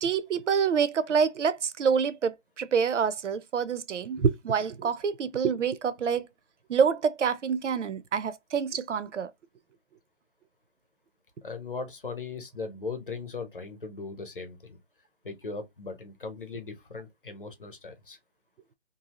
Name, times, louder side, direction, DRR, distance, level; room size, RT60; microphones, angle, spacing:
voice 1, 0.0-6.3 6.7-9.3, right 6 dB, 75° right, 0.5 m, -27 dB
voice 2, 11.4-14.8 15.2-18.2, left 4 dB, 45° left, 0.8 m, -38 dB
2.6 x 2.4 x 2.9 m
figure-of-eight pair, 180°, 36 cm